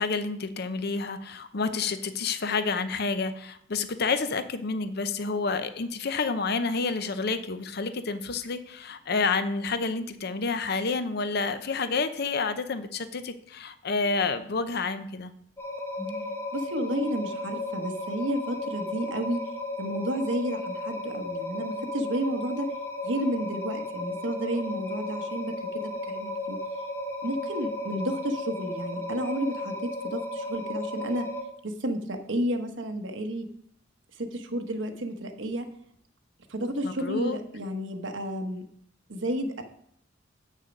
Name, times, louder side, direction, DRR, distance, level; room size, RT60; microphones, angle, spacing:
voice 1, 0.0-15.3 36.8-37.4, left 4 dB, 55° left, 11 dB, 0.7 m, -29 dB
sound 1, 15.6-31.4, left 1 dB, 15° left, 0.9 m, -34 dB
voice 2, 16.5-22.7 23.0-26.6 27.2-31.3 31.6-33.5 34.2-35.7 36.5-38.6 39.1-39.6, right 1 dB, 75° right, 6 dB, 1.1 m, -31 dB
8.1 x 6.4 x 5.3 m, 0.68 s
head